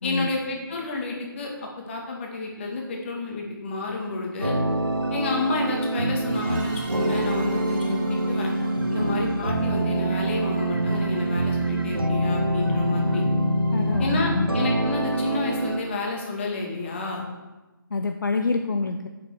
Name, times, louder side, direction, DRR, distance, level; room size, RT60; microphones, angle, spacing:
voice 1, 0.0-1.5 1.9-4.5 5.1-8.5 8.9-13.2 14.0-17.3, left 3 dB, 30° left, 0 dB, 2.2 m, -30 dB
sound 1, 4.4-15.8, right 1 dB, 80° right, 1.3 m, -25 dB
sound 2, 6.3-10.9, right 2 dB, 20° right, 1.6 m, -44 dB
voice 2, 13.7-14.6 17.9-19.1, left 3 dB, 60° left, 5 dB, 0.7 m, -27 dB
8.5 x 7.0 x 6.3 m, 1.1 s
figure-of-eight pair, 150°, 12 cm